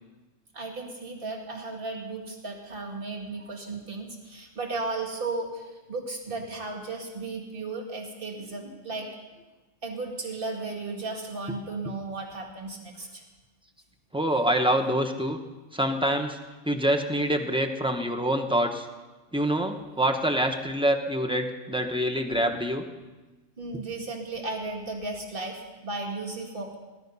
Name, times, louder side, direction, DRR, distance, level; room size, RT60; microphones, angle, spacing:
voice 1, 0.5-9.1 9.8-13.2 23.6-26.8, right 3 dB, 45° right, 1 dB, 2.3 m, -35 dB
voice 2, 14.1-15.4 15.7-16.4 16.7-18.9 19.3-22.8, right 1 dB, 5° right, 5 dB, 1.0 m, -26 dB
18.5 x 11.5 x 5.6 m, 1.2 s
omnidirectional pair, 1.3 m